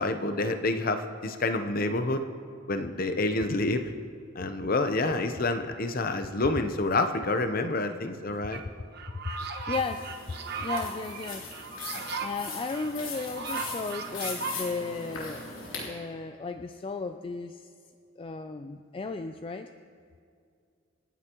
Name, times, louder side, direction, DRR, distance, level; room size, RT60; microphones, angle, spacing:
voice 1, 0.0-2.3 2.7-3.8 4.3-8.6, left 2 dB, 45° left, 8 dB, 0.8 m, -28 dB
sound 1, 8.5-8.6 8.9-14.6, right 5 dB, 55° right, 1.1 m, -36 dB
voice 2, 9.2-10.2 10.6-11.5 12.2-15.4 15.8-17.7 18.2-19.7, left 4 dB, 25° left, 8 dB, 0.3 m, -35 dB
sound 2, 9.7-15.9, left 4 dB, 70° left, 3.5 m, -40 dB
27.0 x 9.8 x 3.0 m, 2.3 s
head